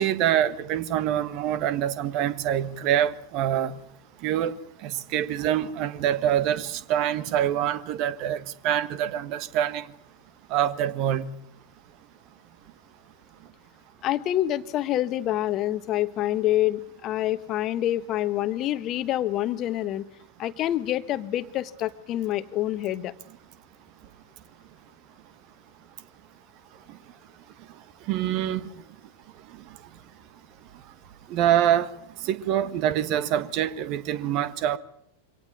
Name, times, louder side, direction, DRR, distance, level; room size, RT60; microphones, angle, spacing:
voice 1, 0.0-3.7 4.2-4.5 4.8-9.8 10.5-11.3 28.1-28.6 31.3-31.9 32.2-34.8, right 11 dB, 40° right, 1.5 m, -25 dB
voice 2, 14.0-20.1 20.4-23.1, left 13 dB, 35° left, 1.3 m, -27 dB
24.5 x 18.5 x 8.6 m
figure-of-eight pair, 90°, 0 cm